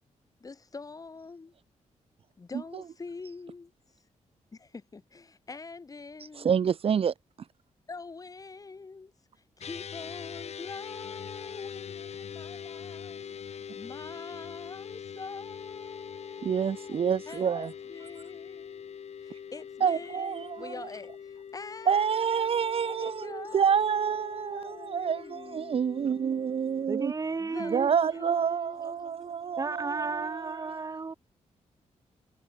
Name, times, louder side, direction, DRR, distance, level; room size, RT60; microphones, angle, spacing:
voice 1, 0.4-1.5 2.4-3.7 4.5-6.5 7.9-13.4 13.7-17.0 17.3-26.2 27.4-29.6, left 4 dB, 30° left, 5.7 m, -45 dB
voice 2, 6.4-7.1 16.4-17.7 19.8-20.7 21.9-27.1 27.7-30.8, right 7 dB, 50° right, 0.8 m, -28 dB
sound 1, 9.6-26.9, left 7 dB, 60° left, 5.7 m, -43 dB
voice 3, 26.9-28.2 29.6-31.1, right 4 dB, 25° right, 1.6 m, -33 dB
wide cardioid pair, 140°, 13 cm